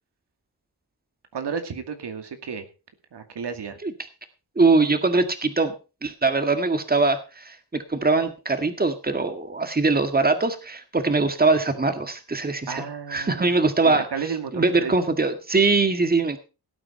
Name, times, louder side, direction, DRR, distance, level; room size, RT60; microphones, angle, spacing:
voice 1, 1.3-2.7 3.1-3.8 12.7-13.5 13.8-15.0, right 6 dB, 85° right, 7 dB, 2.4 m, -32 dB
voice 2, 4.6-5.7 6.0-12.8 13.1-14.1 14.5-16.4, right 3 dB, 25° right, 8 dB, 1.9 m, -22 dB
17.5 x 8.8 x 4.4 m, 0.32 s
wide cardioid pair, 100°, 40 cm